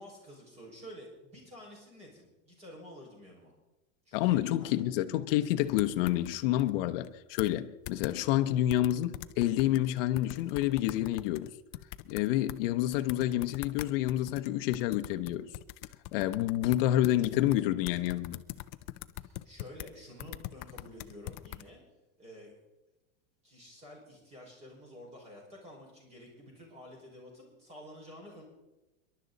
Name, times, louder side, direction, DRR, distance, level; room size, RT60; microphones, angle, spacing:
voice 1, 0.0-3.5 4.1-4.9 19.2-21.8 22.2-22.5 23.4-28.4, equal, 20° right, 5.2 m, -50 dB
voice 2, 4.1-11.5 12.1-15.5 16.1-18.4, left 14 dB, 50° left, 0.9 m, -28 dB
sound 1, 5.7-6.7 7.0-7.1 7.4-7.6 7.9-8.1 8.7-9.9 10.2-12.6 12.9-19.9 20.2-21.6, left 17 dB, 35° left, 0.4 m, -43 dB
25.5 x 11.5 x 4.0 m
supercardioid pair, 170°, 36 cm